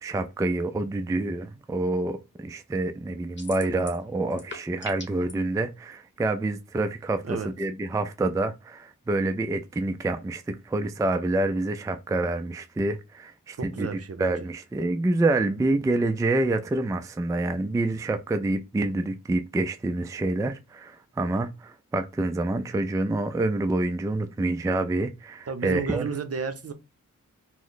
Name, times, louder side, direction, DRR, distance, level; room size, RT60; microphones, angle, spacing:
voice 1, 0.0-13.9 14.2-26.1, right 2 dB, 10° right, 0.3 m, -27 dB
sound 1, 3.4-4.0 4.3-5.3, left 2 dB, 35° left, 0.9 m, -39 dB
voice 2, 13.6-14.3 25.5-26.7, right 5 dB, 50° right, 0.6 m, -32 dB
2.9 x 2.1 x 3.9 m
cardioid pair, 55°, 31 cm